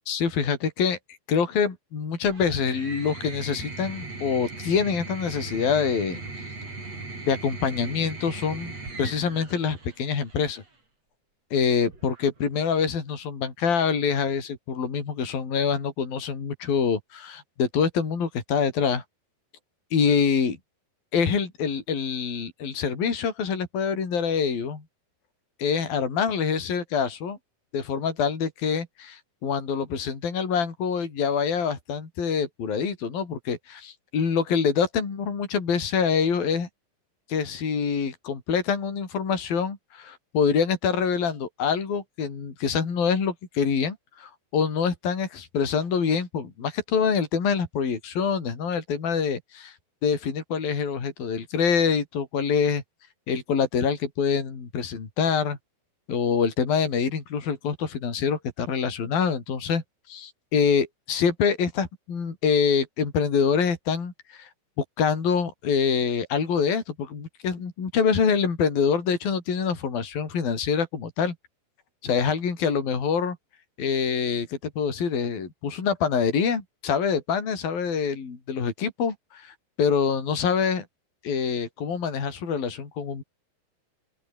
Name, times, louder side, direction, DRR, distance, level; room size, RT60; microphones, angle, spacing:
voice 1, 0.1-1.0 1.3-6.2 7.3-10.6 11.5-19.0 19.9-20.6 21.1-24.8 25.6-27.4 27.7-36.7 37.3-49.7 50.0-52.8 53.3-55.6 56.1-59.8 60.1-64.5 65.0-71.3 72.0-73.4 73.8-80.8 81.2-83.2, left 6 dB, 55° left, 6.6 m, -25 dB
sound 1, 2.2-10.7 11.9-12.5, right 3 dB, 35° right, 8.4 m, -39 dB
open air
omnidirectional pair, 5.0 m